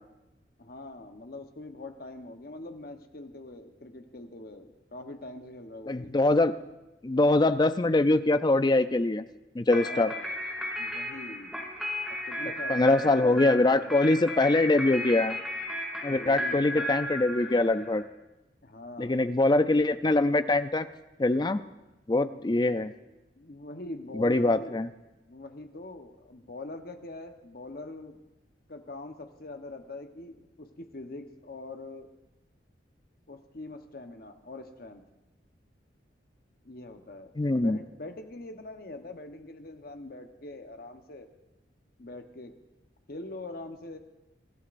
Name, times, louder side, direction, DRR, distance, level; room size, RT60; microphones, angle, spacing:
voice 1, 0.6-6.1 9.7-10.3 10.8-11.6 12.2-14.0 16.1-16.9 18.6-19.2 22.3-22.7 23.3-24.8 25.3-28.2 28.7-32.1 33.3-35.0 36.6-41.3 42.0-42.5 43.1-44.0, left 2 dB, 55° left, 5 dB, 1.1 m, -43 dB
voice 2, 5.9-6.6 7.0-9.2 9.6-10.1 12.7-15.4 16.0-18.0 19.0-20.9 21.2-21.6 22.1-22.9 24.1-24.9 37.4-37.8, left 2 dB, 25° left, 12 dB, 0.4 m, -23 dB
sound 1, 9.7-18.0, equal, ahead, 2.4 m, -35 dB
23.0 x 13.0 x 2.6 m, 1.0 s
head